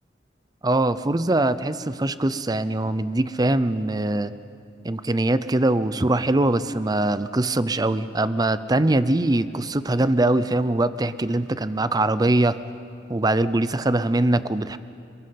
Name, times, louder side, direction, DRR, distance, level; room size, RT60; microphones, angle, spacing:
voice 1, 0.6-4.3 4.8-12.6 13.1-14.8, right 2 dB, 20° right, 14 dB, 0.6 m, -22 dB
29.0 x 20.0 x 5.9 m, 2.4 s
head